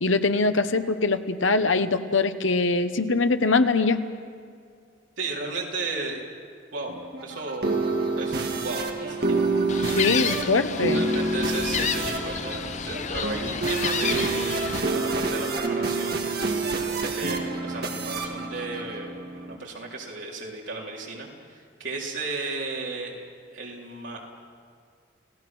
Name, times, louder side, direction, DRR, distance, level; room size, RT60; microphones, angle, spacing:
voice 1, 0.0-4.0 10.0-11.0, left 3 dB, 80° left, 9 dB, 1.1 m, -22 dB
voice 2, 5.2-6.2 6.7-7.7 8.2-9.4 10.9-16.3 17.0-23.2 23.5-24.3, right 3 dB, 70° right, -2 dB, 4.1 m, -34 dB
sound 1, 6.9-19.6, right 3 dB, 50° right, 2.0 m, -28 dB
Gull seagull, 9.7-14.8, left 7 dB, 35° left, 0.6 m, -31 dB
29.5 x 17.5 x 6.2 m, 2.2 s
head